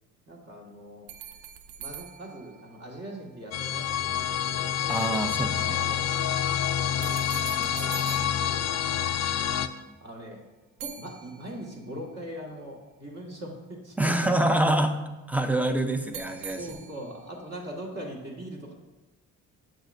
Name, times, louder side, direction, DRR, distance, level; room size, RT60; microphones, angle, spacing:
voice 1, 0.3-1.1 1.8-4.7 5.5-6.0 6.8-9.2 9.6-10.4 10.8-14.8 16.4-18.7, right 1 dB, 45° right, -2 dB, 1.9 m, -41 dB
sound 1, 1.1-3.5 7.0-9.5 10.8-12.0 16.1-17.4, right 9 dB, 80° right, 0.6 m, -44 dB
sound 2, 3.5-9.7, left 10 dB, 45° left, 0.5 m, -27 dB
voice 2, 4.9-5.8 14.0-14.9 15.3-16.6, right 1 dB, 5° right, 7 dB, 0.6 m, -25 dB
7.9 x 6.2 x 2.6 m, 1.1 s
supercardioid pair, 65°, 37 cm